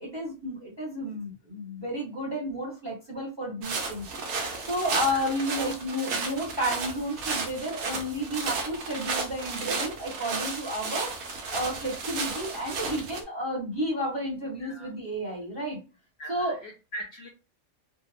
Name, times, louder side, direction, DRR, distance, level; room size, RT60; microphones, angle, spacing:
voice 1, 0.0-15.8 16.3-16.6, equal, 25° right, -3 dB, 0.7 m, -32 dB
sound 1, 3.6-13.2, right 4 dB, 85° right, 1.1 m, -33 dB
voice 2, 14.6-14.9 16.2-17.3, equal, 65° left, 1 dB, 0.7 m, -41 dB
2.7 x 2.1 x 2.4 m, 0.31 s
omnidirectional pair, 1.5 m